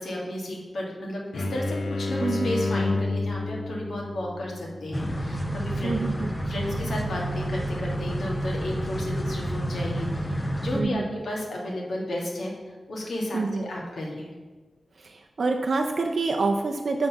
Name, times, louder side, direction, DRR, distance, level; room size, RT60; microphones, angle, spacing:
voice 1, 0.0-12.5 12.9-14.3, left 1 dB, 65° left, -3 dB, 1.6 m, -33 dB
sound 1, 1.3-6.8, left 2 dB, 80° left, 0.6 m, -31 dB
voice 2, 2.2-2.6 5.8-6.3 10.7-11.1 13.3-13.7 15.0-17.1, right 3 dB, 50° right, 3 dB, 0.4 m, -27 dB
sound 2, 4.9-10.8, right 1 dB, 10° left, 0.4 m, -29 dB
7.2 x 4.0 x 5.7 m, 1.3 s
wide cardioid pair, 165°, 0 cm